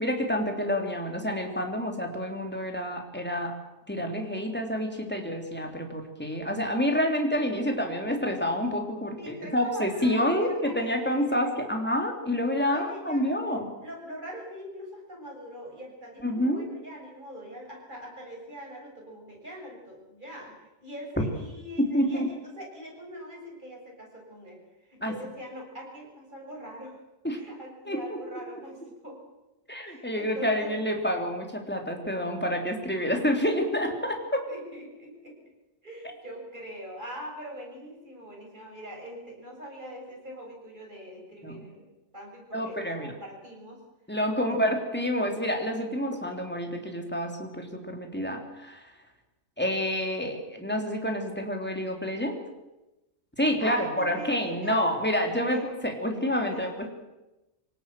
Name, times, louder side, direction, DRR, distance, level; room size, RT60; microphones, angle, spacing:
voice 1, 0.0-3.6 3.9-13.7 16.2-16.7 21.8-22.3 25.0-25.1 27.2-27.4 27.9-28.2 29.7-34.5 41.4-41.6 42.5-43.1 44.1-48.9 49.6-52.4 53.4-56.9, equal, 5° left, 3 dB, 3.5 m, -28 dB
voice 2, 9.2-11.8 12.4-13.3 13.8-20.5 20.8-27.0 27.3-29.2 29.8-30.7 34.5-35.4 35.8-41.9 42.1-43.8 44.5-44.7 53.6-54.8 55.3-55.7 56.5-56.9, equal, 35° right, -1 dB, 7.5 m, -43 dB
25.5 x 18.0 x 7.7 m, 1.0 s
omnidirectional pair, 1.4 m